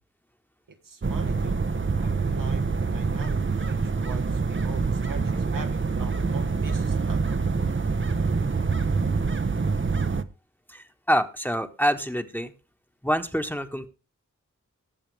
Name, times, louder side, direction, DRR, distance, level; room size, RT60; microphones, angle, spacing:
voice 1, 0.7-1.6 2.0-7.5, right 4 dB, 85° right, 5 dB, 1.6 m, -43 dB
sound 1, 1.0-10.2, right 4 dB, 40° right, 0.9 m, -26 dB
voice 2, 10.7-12.5 13.0-13.9, equal, 5° left, 7 dB, 1.4 m, -26 dB
19.5 x 7.4 x 3.4 m, 0.31 s
cardioid pair, 45°, 32 cm